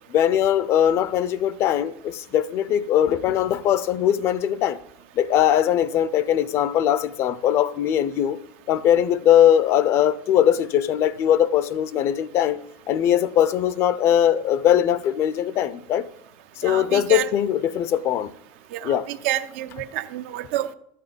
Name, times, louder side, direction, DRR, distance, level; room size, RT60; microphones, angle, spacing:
voice 1, 0.1-4.8 5.2-8.4 8.7-12.6 12.9-16.1 16.6-18.3 18.8-19.1, left 10 dB, 45° left, 0.5 m, -20 dB
voice 2, 16.6-17.3 18.7-20.7, right 13 dB, 80° right, 0.7 m, -28 dB
12.5 x 8.5 x 5.1 m
cardioid pair, 150°, 7 cm